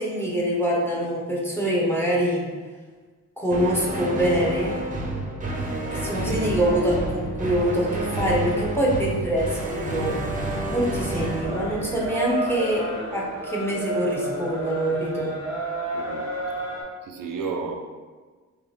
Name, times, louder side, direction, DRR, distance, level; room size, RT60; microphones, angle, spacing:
voice 1, 0.0-2.5 3.4-4.8 5.9-10.2 10.7-15.3, equal, 5° left, -3 dB, 0.9 m, -25 dB
sound 1, 3.5-12.9, right 1 dB, 25° right, 0.7 m, -29 dB
sound 2, 11.1-16.8, right 2 dB, 60° left, 1.4 m, -31 dB
voice 2, 15.9-16.3 17.0-17.8, right 4 dB, 80° right, 3 dB, 0.6 m, -32 dB
3.3 x 2.8 x 4.0 m, 1.4 s
cardioid pair, 95°, 33 cm